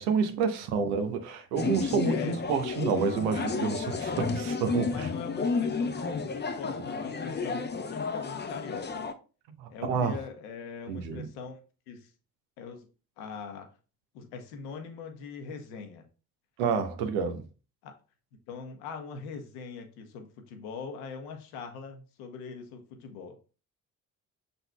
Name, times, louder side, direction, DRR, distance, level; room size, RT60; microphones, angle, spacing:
voice 1, 0.0-5.1 9.5-10.2 10.9-11.3 16.6-17.4, right 6 dB, 80° right, 0.8 m, -29 dB
sound 1, 1.6-9.1, left 4 dB, 25° left, 0.6 m, -32 dB
voice 2, 2.0-2.4 4.8-9.1 9.7-11.6 11.9-12.1 12.6-12.9 13.2-13.7 14.1-16.0 17.8-17.9 18.5-23.4, left 5 dB, 85° left, 0.9 m, -41 dB
5.9 x 3.9 x 2.2 m
hypercardioid pair, 45°, 45 cm